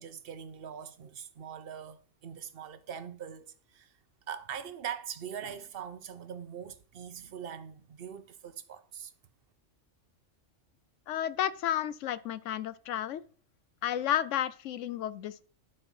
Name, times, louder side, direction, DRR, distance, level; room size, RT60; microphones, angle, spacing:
voice 1, 0.0-3.9 4.3-9.1, right 8 dB, 55° right, 0.9 m, -42 dB
voice 2, 11.1-13.2 13.8-15.4, left 11 dB, 75° left, 0.9 m, -32 dB
12.0 x 4.3 x 5.4 m
omnidirectional pair, 1.3 m